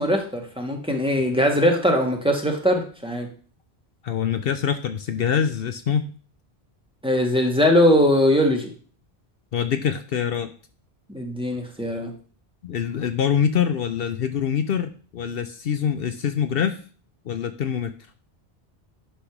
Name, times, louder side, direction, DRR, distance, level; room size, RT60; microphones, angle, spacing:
voice 1, 0.0-3.3 7.0-8.7 11.1-12.1, left 1 dB, 5° right, 2 dB, 1.4 m, -21 dB
voice 2, 4.0-6.0 9.5-10.5 12.6-16.8 17.3-17.9, left 8 dB, 65° left, 9 dB, 0.8 m, -24 dB
10.0 x 3.5 x 5.8 m, 0.41 s
omnidirectional pair, 1.1 m